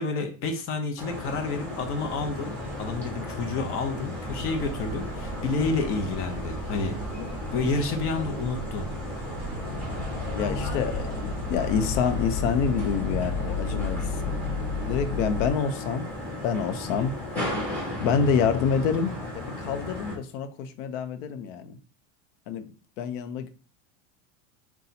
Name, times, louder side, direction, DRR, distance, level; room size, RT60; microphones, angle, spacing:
voice 1, 0.0-2.5 2.8-7.0 7.5-8.9, left 4 dB, 35° left, 5 dB, 0.7 m, -29 dB
sound 1, 1.0-20.1, left 1 dB, 5° left, 1.5 m, -35 dB
sound 2, 4.2-15.5, left 2 dB, 25° right, 1.1 m, -34 dB
voice 2, 10.3-14.4 14.9-16.1 16.4-17.1 18.0-21.7 22.5-22.7 23.0-23.5, left 6 dB, 65° left, 10 dB, 0.7 m, -27 dB
4.2 x 2.3 x 4.0 m, 0.38 s
supercardioid pair, 150°, 40 cm